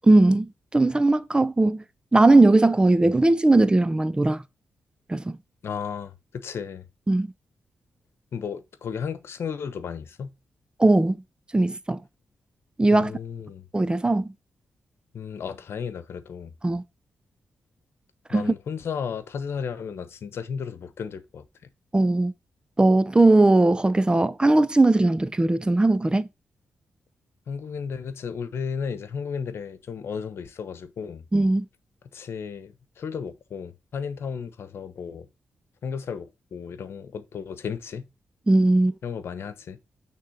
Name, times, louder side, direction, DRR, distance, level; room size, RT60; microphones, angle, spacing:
voice 1, 0.0-1.8 2.1-4.4 5.1-5.4 7.1-7.3 10.8-11.2 11.5-12.0 12.8-13.1 13.7-14.3 16.6-16.8 18.3-18.5 21.9-22.3 22.8-26.3 31.3-31.7 38.5-38.9, right 2 dB, 20° right, 0.6 m, -19 dB
voice 2, 5.6-6.9 8.3-10.3 12.9-13.7 15.1-16.5 18.3-21.4 27.5-31.2 32.1-35.3 35.8-38.0 39.0-39.8, left 6 dB, 70° left, 1.1 m, -34 dB
8.9 x 3.7 x 5.7 m
cardioid pair, 60°, 4 cm